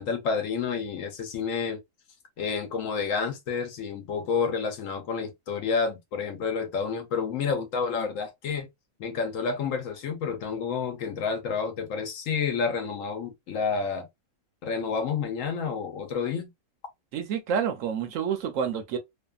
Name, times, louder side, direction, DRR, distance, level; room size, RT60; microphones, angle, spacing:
voice 1, 0.0-1.8 2.4-8.7 9.0-14.1 14.6-16.5, left 5 dB, 65° left, 1.0 m, -29 dB
voice 2, 17.1-19.0, right 7 dB, 70° right, 0.9 m, -28 dB
2.7 x 2.3 x 2.2 m
omnidirectional pair, 1.5 m